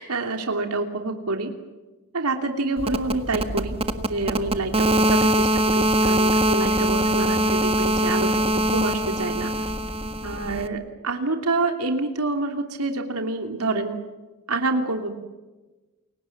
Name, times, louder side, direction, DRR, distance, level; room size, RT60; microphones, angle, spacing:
voice 1, 0.0-1.5 2.1-9.5 10.2-14.0 14.5-15.1, right 3 dB, 85° right, 5 dB, 2.9 m, -27 dB
sound 1, 2.8-10.7, right 1 dB, 25° right, 1.6 m, -22 dB
29.0 x 23.5 x 7.4 m, 1.2 s
head